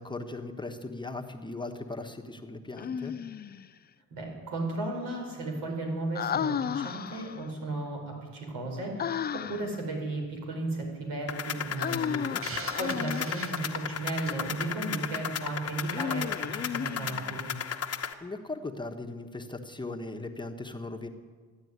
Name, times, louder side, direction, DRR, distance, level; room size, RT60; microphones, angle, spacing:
voice 1, 0.0-3.1 11.9-12.4 18.2-21.1, left 2 dB, 15° left, 3 dB, 1.3 m, -38 dB
Human voice, 2.8-3.7 6.1-7.5 9.0-9.8 11.8-13.6 15.8-17.4, left 8 dB, 30° left, 0.4 m, -34 dB
voice 2, 4.1-17.5, right 2 dB, 90° right, 1 dB, 4.8 m, -35 dB
sound 1, 11.3-18.1, left 8 dB, 45° left, 1.2 m, -35 dB
Hiss, 12.4-14.5, right 5 dB, 40° right, 1.1 m, -42 dB
14.0 x 9.9 x 9.6 m, 1.5 s
cardioid pair, 90°, 33 cm